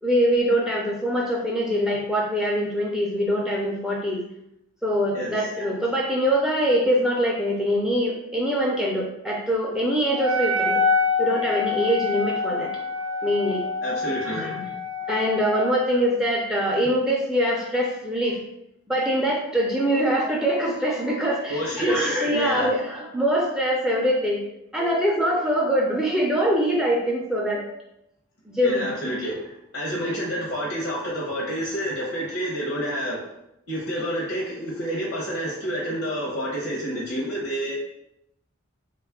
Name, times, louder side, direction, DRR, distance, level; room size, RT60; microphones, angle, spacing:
voice 1, 0.0-4.2 4.8-10.8 11.2-12.8 13.2-13.9 14.2-14.7 15.1-18.4 18.9-24.4 24.7-27.8 28.5-28.9, equal, ahead, -3 dB, 0.3 m, -23 dB
voice 2, 5.1-5.5 13.8-14.5 21.5-22.7 28.6-33.3 33.7-37.7, equal, 75° left, -4 dB, 0.7 m, -29 dB
Wind instrument woodwind instrument, 10.1-15.9, left 4 dB, 80° right, 0.4 m, -26 dB
3.0 x 2.3 x 3.5 m, 0.82 s
head